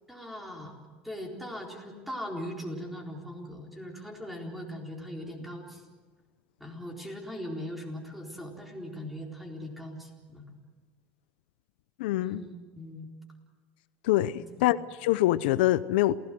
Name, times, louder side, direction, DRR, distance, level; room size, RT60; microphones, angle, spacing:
voice 1, 0.1-0.7 1.0-5.9 6.6-10.4 12.2-13.1 14.3-14.7, equal, ahead, 1 dB, 4.2 m, -40 dB
voice 2, 12.0-12.4 14.0-16.2, left 15 dB, 85° left, 15 dB, 0.7 m, -25 dB
27.5 x 17.0 x 7.8 m, 1.4 s
supercardioid pair, 130°, 5 cm